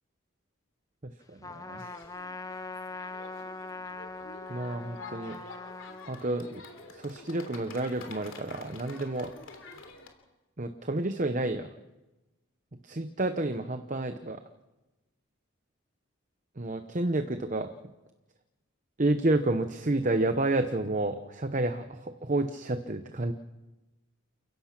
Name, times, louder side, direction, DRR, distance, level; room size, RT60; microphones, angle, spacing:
voice 1, 1.3-1.8 4.5-5.4 6.1-6.6 6.9-9.3 10.6-11.7 12.8-14.4 16.6-17.7 19.0-23.3, right 2 dB, 35° right, 8 dB, 0.9 m, -30 dB
Trumpet, 1.4-6.1, left 3 dB, 15° left, 0.9 m, -41 dB
sound 1, 1.8-10.1, left 3 dB, 65° left, 3.3 m, -48 dB
29.0 x 16.0 x 6.0 m, 1.1 s
head